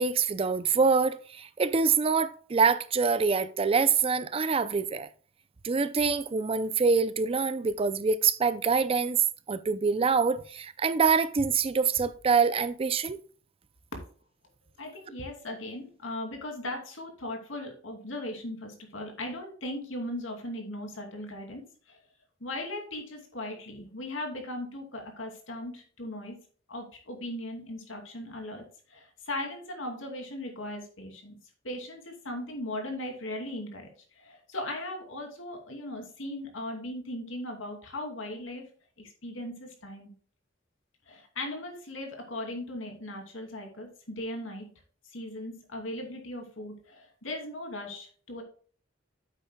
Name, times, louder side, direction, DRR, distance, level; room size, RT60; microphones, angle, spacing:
voice 1, 0.0-5.1 5.6-13.2, right 5 dB, 30° right, 0.4 m, -25 dB
voice 2, 14.8-22.0 22.4-26.4 26.7-31.4 31.6-38.7 39.0-40.1 41.1-44.7 45.0-48.4, left 1 dB, 80° left, 2.6 m, -38 dB
9.1 x 8.3 x 2.2 m
head